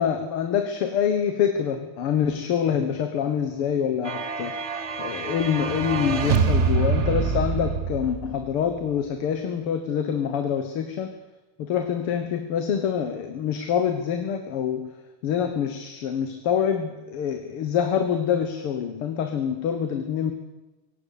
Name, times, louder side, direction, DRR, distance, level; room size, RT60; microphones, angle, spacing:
voice 1, 0.0-4.6 5.0-11.1 11.6-14.9 15.2-20.3, left 8 dB, 80° left, 8 dB, 2.2 m, -26 dB
sound 1, 4.0-8.7, right 5 dB, 40° right, 1.1 m, -25 dB
18.0 x 17.0 x 8.5 m, 1.1 s
omnidirectional pair, 2.4 m